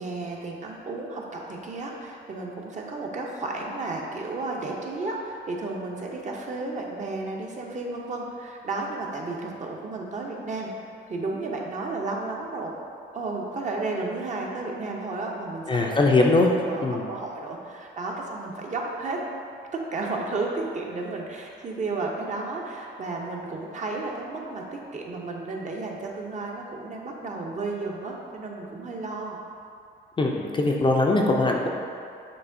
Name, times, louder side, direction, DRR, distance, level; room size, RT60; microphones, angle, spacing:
voice 1, 0.0-10.7 11.1-12.7 13.1-16.0 16.6-19.2 19.7-29.4, right 3 dB, 40° right, -1 dB, 0.6 m, -33 dB
voice 2, 15.7-16.5 16.8-17.1 30.2-31.7, left 2 dB, 25° left, 0 dB, 0.4 m, -21 dB
6.8 x 2.7 x 2.6 m, 2.4 s
cardioid pair, 90°, 20 cm